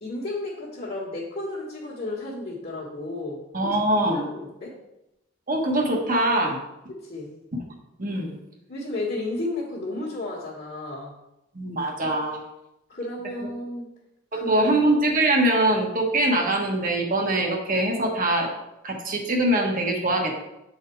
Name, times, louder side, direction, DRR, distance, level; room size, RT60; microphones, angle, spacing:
voice 1, 0.0-3.7 4.0-4.8 6.9-7.3 8.7-11.1 12.9-13.9 14.3-14.7, left 2 dB, 50° left, -7 dB, 1.6 m, -33 dB
voice 2, 3.5-4.2 5.5-6.6 7.5-7.6 8.0-8.4 11.5-12.4 14.3-18.5 18.8-20.4, right 1 dB, 45° right, 1 dB, 1.2 m, -23 dB
7.2 x 4.2 x 4.6 m, 0.90 s
head